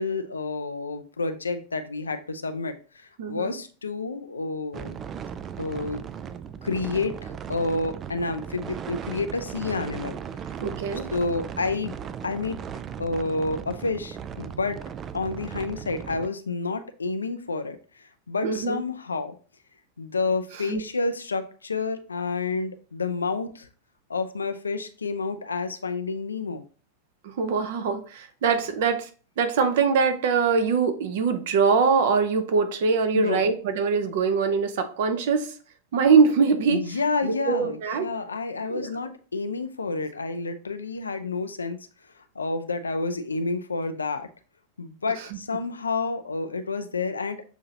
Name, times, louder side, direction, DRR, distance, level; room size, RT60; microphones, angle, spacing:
voice 1, 0.0-5.0 5.6-6.0 6.6-10.2 11.1-12.0 12.2-12.6 13.0-14.8 15.1-19.4 20.0-23.7 24.1-26.6 33.1-33.4 36.7-41.8 42.2-44.3 44.8-47.4, left 3 dB, 75° left, 10 dB, 0.4 m, -29 dB
voice 2, 3.2-3.5 10.6-11.0 18.4-18.8 20.7-20.8 27.2-29.1 29.4-35.5 35.9-36.8 37.5-38.1 38.7-38.9, right 5 dB, 55° right, 8 dB, 0.7 m, -23 dB
sound 1, 4.7-16.3, right 8 dB, 25° right, 0.3 m, -37 dB
6.8 x 2.8 x 2.8 m, 0.39 s
figure-of-eight pair, 90°, 0 cm